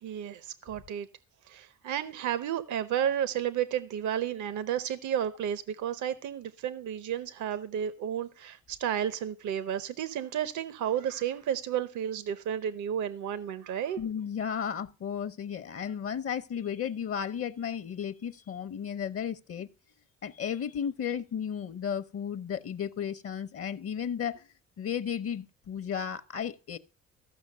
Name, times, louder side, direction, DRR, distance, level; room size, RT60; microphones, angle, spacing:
voice 1, 0.0-1.1 1.5-14.0, right 9 dB, 75° right, 0.8 m, -32 dB
voice 2, 14.0-19.7 20.2-24.5 24.8-26.8, left 8 dB, 50° left, 0.7 m, -34 dB
14.5 x 5.8 x 6.6 m
cardioid pair, 90°, 30 cm